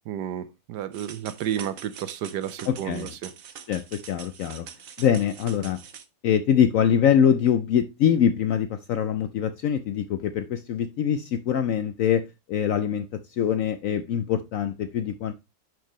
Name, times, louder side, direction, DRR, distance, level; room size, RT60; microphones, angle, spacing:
voice 1, 0.1-3.3, right 10 dB, 80° right, 1.2 m, -32 dB
sound 1, 0.9-6.0, right 8 dB, 60° right, 1.1 m, -44 dB
voice 2, 2.7-3.1 3.7-4.7 5.0-5.8 6.2-15.3, left 8 dB, 70° left, 0.8 m, -24 dB
10.5 x 4.6 x 3.0 m
omnidirectional pair, 1.9 m